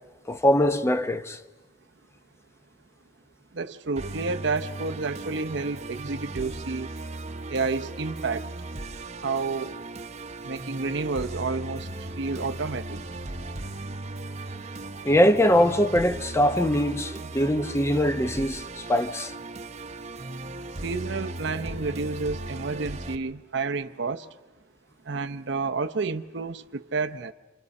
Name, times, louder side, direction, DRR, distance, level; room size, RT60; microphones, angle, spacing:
voice 1, 0.3-1.4 15.0-19.3, equal, 15° left, 0.9 m, -22 dB
voice 2, 3.5-6.9 7.5-8.4 9.2-9.7 10.4-11.9 12.2-13.0 20.8-24.3 25.1-27.3, right 4 dB, 65° right, 0.8 m, -30 dB
Musical instrument, 4.0-23.2, right 2 dB, 35° right, 1.0 m, -37 dB
29.0 x 27.0 x 5.4 m
head